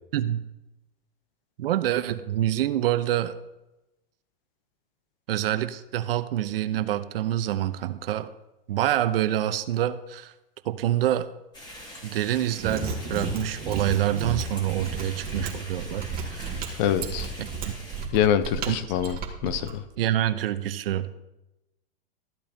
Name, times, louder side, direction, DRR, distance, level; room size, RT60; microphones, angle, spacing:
voice 1, 1.6-3.3 5.3-8.3 8.7-10.3 10.7-11.3 12.0-16.5 17.4-17.5 18.7-18.8 20.0-21.2, right 12 dB, 75° right, 12 dB, 0.8 m, -26 dB
sound 1, 11.5-18.1, equal, 15° left, 3.2 m, -44 dB
Mechanisms, 12.5-19.7, right 4 dB, 30° right, 2.0 m, -33 dB
voice 2, 16.8-17.3 18.1-19.8, left 10 dB, 50° left, 12 dB, 0.9 m, -25 dB
14.0 x 8.5 x 2.8 m, 0.95 s
hypercardioid pair, 120°, 29 cm